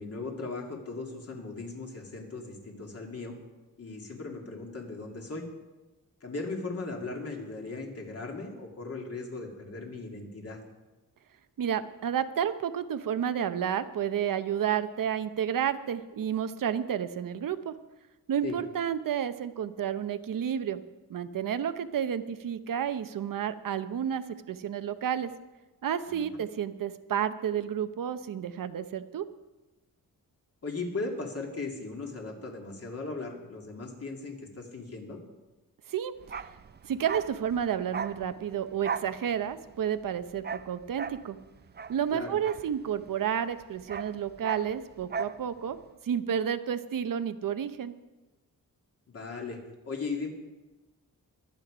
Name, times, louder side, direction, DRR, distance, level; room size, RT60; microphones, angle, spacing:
voice 1, 0.0-3.3 3.8-5.5 6.2-10.6 18.4-18.6 26.1-26.2 30.6-35.2 42.1-42.4 49.1-50.3, left 3 dB, 45° left, 1 dB, 2.4 m, -38 dB
voice 2, 11.6-17.8 18.3-20.8 21.1-25.3 25.8-29.3 35.9-36.1 36.8-41.4 41.9-45.8 46.0-47.9, right 9 dB, 75° right, 11 dB, 0.8 m, -31 dB
Bark, 36.2-43.2 43.5-45.4 45.7-45.8, right 6 dB, 30° right, 0.4 m, -38 dB
23.0 x 8.4 x 5.0 m, 1.1 s
wide cardioid pair, 160°, 33 cm